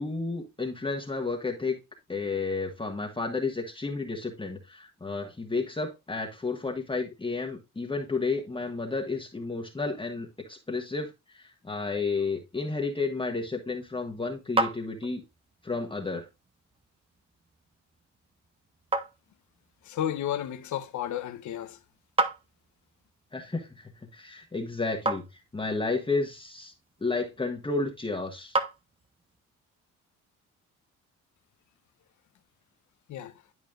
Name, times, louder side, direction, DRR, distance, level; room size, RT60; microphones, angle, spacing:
voice 1, 0.0-1.8 2.1-15.2 15.6-16.3 23.3-26.7 27.0-28.6, left 3 dB, 15° left, 1.4 m, -32 dB
sound 1, 13.6-29.4, right 3 dB, 20° right, 0.9 m, -37 dB
voice 2, 19.8-21.8 33.1-33.3, left 11 dB, 75° left, 1.0 m, -32 dB
11.0 x 4.8 x 2.4 m
cardioid pair, 90°, 30 cm